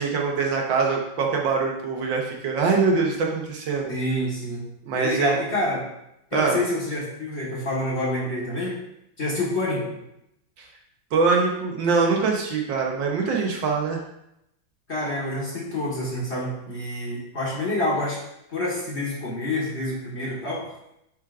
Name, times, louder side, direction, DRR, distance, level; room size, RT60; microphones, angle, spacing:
voice 1, 0.0-3.9 4.9-5.4 6.3-6.6 10.6-10.7 11.1-14.0, right 4 dB, 70° right, 0 dB, 1.6 m, -23 dB
voice 2, 3.9-4.6 4.9-5.8 6.3-8.8 9.2-9.9 14.9-18.2 18.5-20.6, left 1 dB, 35° left, -6 dB, 1.6 m, -27 dB
9.3 x 4.7 x 2.5 m, 0.82 s
omnidirectional pair, 2.2 m